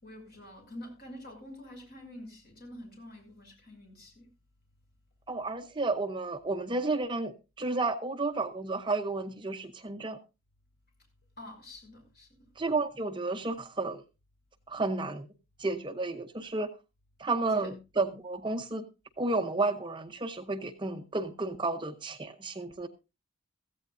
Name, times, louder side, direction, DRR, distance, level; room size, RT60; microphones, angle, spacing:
voice 1, 0.0-4.3 11.4-12.4 17.4-17.7, left 1 dB, 45° left, 5.9 m, -47 dB
voice 2, 5.3-10.2 12.6-14.0 14.7-15.3 15.6-16.7 17.2-18.9 19.2-22.9, right 3 dB, 20° right, 0.7 m, -32 dB
16.0 x 14.5 x 2.5 m
head